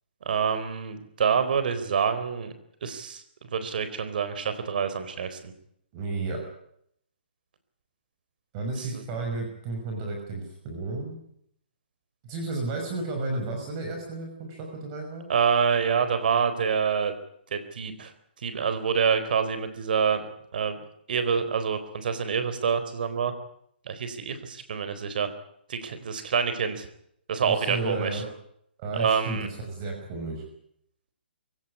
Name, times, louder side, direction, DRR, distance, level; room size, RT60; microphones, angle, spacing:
voice 1, 0.3-2.5 2.8-3.2 3.5-5.5 8.8-9.0 15.3-17.2 17.5-18.1 18.4-20.2 20.5-20.8 21.1-23.3 23.9-25.3 25.7-26.9 27.3-28.2 28.9-29.5, right 6 dB, 55° right, 11 dB, 4.1 m, -26 dB
voice 2, 5.9-6.4 8.5-11.2 12.2-15.3 27.4-28.3 28.8-30.4, right 3 dB, 25° right, 2 dB, 5.6 m, -33 dB
23.5 x 17.0 x 9.7 m, 0.72 s
hypercardioid pair, 160°, 6 cm